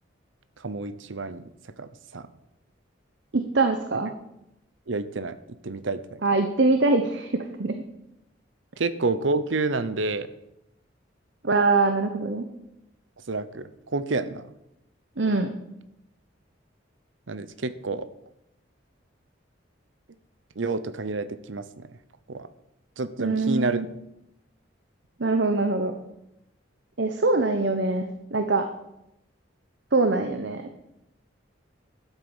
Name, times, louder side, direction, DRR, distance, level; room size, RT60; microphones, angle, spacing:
voice 1, 0.6-1.4 1.8-2.3 4.9-5.4 5.6-6.2 8.8-10.3 13.3-14.4 17.3-18.1 20.6-21.9 22.3-22.5 23.0-23.9, right 3 dB, 90° right, 14 dB, 0.8 m, -29 dB
voice 2, 3.3-4.1 6.2-7.8 11.4-12.4 15.2-15.5 23.2-23.8 25.2-25.9 27.0-28.7 29.9-30.6, right 3 dB, 65° right, 6 dB, 1.0 m, -23 dB
12.0 x 8.0 x 7.2 m, 0.85 s
head